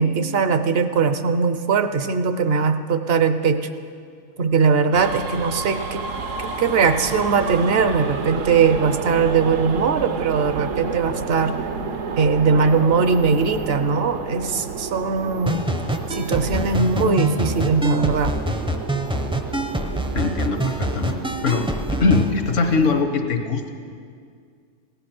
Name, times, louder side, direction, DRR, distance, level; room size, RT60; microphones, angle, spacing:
voice 1, 0.0-3.6 4.4-6.0 6.6-11.5 12.2-15.5 16.1-18.4, right 5 dB, 55° right, 9 dB, 0.8 m, -20 dB
sound 1, 4.9-23.0, right 4 dB, 75° right, 1.2 m, -31 dB
sound 2, 15.5-22.3, equal, 5° right, 0.5 m, -26 dB
voice 2, 20.1-23.7, left 4 dB, 70° left, 6 dB, 1.4 m, -22 dB
16.5 x 10.0 x 6.0 m, 2.2 s
omnidirectional pair, 1.4 m